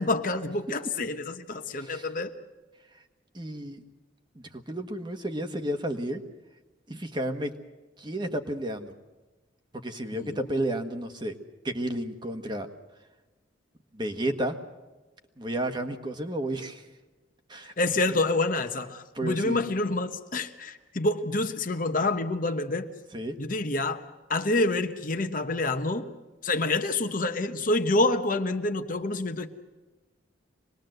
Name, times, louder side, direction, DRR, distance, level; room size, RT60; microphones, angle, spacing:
voice 1, 0.0-2.3 10.1-10.4 17.8-22.9 23.4-24.0 24.3-26.1 26.4-29.5, left 2 dB, 45° left, 7 dB, 1.2 m, -27 dB
voice 2, 1.7-2.1 3.3-3.8 4.3-6.2 6.9-7.5 8.0-8.9 9.7-11.3 11.6-12.7 13.9-14.6 15.4-16.9 17.5-17.7 19.1-19.6 23.1-23.4, right 1 dB, 25° right, 6 dB, 1.5 m, -32 dB
25.5 x 20.5 x 7.9 m, 1.2 s
head